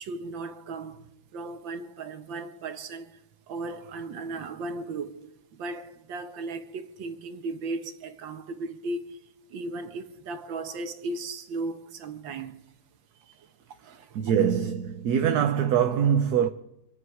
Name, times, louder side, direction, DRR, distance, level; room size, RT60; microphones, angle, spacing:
voice 1, 0.0-3.2 3.5-12.6 13.2-13.5 13.8-14.2, right 3 dB, 80° right, 1.9 m, -36 dB
voice 2, 14.1-16.5, right 8 dB, 60° right, 1.2 m, -23 dB
26.5 x 9.3 x 4.8 m
omnidirectional pair, 2.1 m